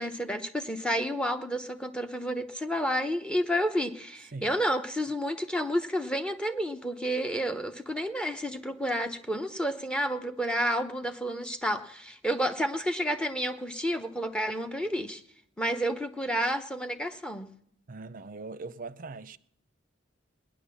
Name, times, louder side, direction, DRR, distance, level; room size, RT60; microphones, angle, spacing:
voice 1, 0.0-15.2 15.6-17.5, equal, 5° left, 0.8 m, -30 dB
voice 2, 17.9-19.4, right 3 dB, 45° right, 0.6 m, -41 dB
19.0 x 10.5 x 7.0 m
head